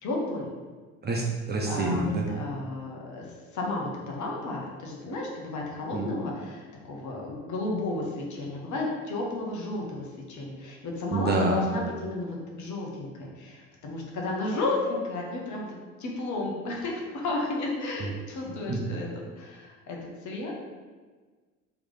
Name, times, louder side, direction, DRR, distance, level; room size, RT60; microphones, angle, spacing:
voice 1, 0.0-0.5 1.6-3.3 3.5-20.5, left 2 dB, 45° left, -2 dB, 1.1 m, -33 dB
voice 2, 1.0-2.3 5.9-6.1 11.1-11.6 18.7-18.8, right 2 dB, 25° right, -1 dB, 0.7 m, -27 dB
3.5 x 3.1 x 3.9 m, 1.4 s
figure-of-eight pair, 60°, 41 cm